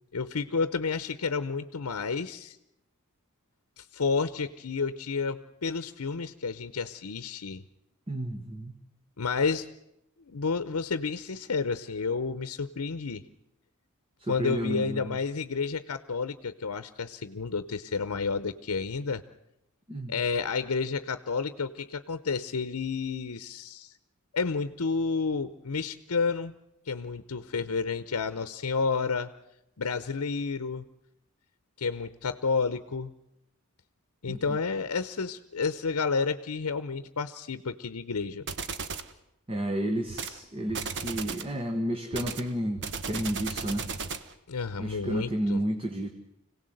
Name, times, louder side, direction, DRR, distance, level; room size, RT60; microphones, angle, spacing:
voice 1, 0.1-2.6 3.8-7.6 9.2-9.7 10.3-13.2 14.3-19.2 20.1-23.9 24.3-26.5 26.9-29.3 29.8-30.8 31.8-33.1 34.2-38.5 44.5-45.6, left 4 dB, 85° left, 13 dB, 0.8 m, -30 dB
voice 2, 8.1-8.8 14.2-15.1 19.9-20.1 34.3-34.6 39.5-43.9 44.8-46.1, right 1 dB, 25° right, 5 dB, 1.3 m, -31 dB
sound 1, 38.5-39.1 40.1-40.4 40.7-41.5 42.1-44.3, right 5 dB, 55° right, 1.1 m, -35 dB
25.5 x 17.5 x 7.8 m, 0.82 s
head